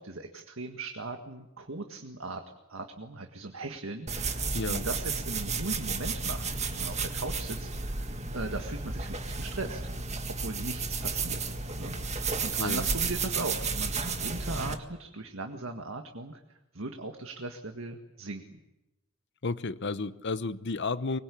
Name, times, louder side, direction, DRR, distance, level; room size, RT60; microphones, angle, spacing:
voice 1, 0.0-2.4 2.7-9.8 10.3-16.4 16.7-18.4, right 2 dB, 75° right, 5 dB, 1.8 m, -38 dB
sound 1, 4.1-14.7, right 4 dB, 35° right, 1.8 m, -32 dB
voice 2, 4.5-4.9 12.6-12.9 19.4-21.2, left 3 dB, 60° left, 14 dB, 0.9 m, -32 dB
24.5 x 21.5 x 8.5 m, 0.96 s
head